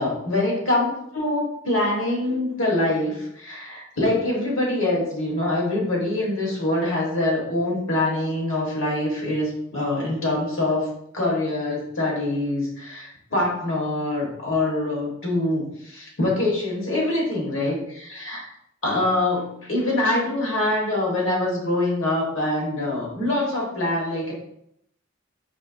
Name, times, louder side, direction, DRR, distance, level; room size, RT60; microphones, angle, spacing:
voice 1, 0.0-10.9 11.1-18.4 18.8-24.3, left 1 dB, 65° left, -3 dB, 1.3 m, -24 dB
4.3 x 2.9 x 2.5 m, 0.75 s
head